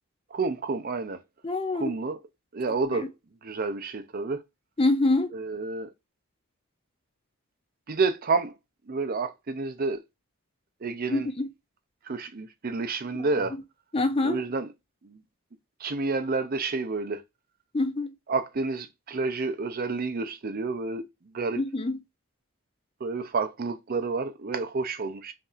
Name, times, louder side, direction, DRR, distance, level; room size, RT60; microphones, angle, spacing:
voice 1, 0.3-1.2 1.7-2.2 2.5-3.1 3.4-4.4 5.3-5.9 7.9-8.5 8.9-10.0 10.8-11.3 12.0-13.6 14.2-14.7 15.0-15.2 15.8-17.2 18.3-21.0 21.3-21.6 23.0-25.3, right 4 dB, 40° right, 0.5 m, -29 dB
voice 2, 1.4-1.9 2.9-3.0 4.8-5.3 11.1-11.5 13.2-13.3 13.9-14.4 17.7-18.1 21.6-22.0, left 2 dB, 25° left, 0.5 m, -25 dB
5.4 x 2.7 x 2.4 m
head